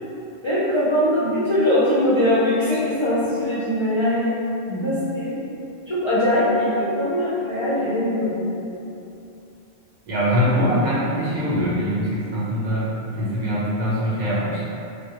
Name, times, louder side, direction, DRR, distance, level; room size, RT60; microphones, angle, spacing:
voice 1, 0.4-4.4 4.8-5.4 5.9-8.7, left 1 dB, 45° left, -11 dB, 0.4 m, -21 dB
voice 2, 10.1-14.6, equal, 50° right, -9 dB, 0.7 m, -23 dB
3.1 x 2.2 x 2.9 m, 2.7 s
omnidirectional pair, 1.1 m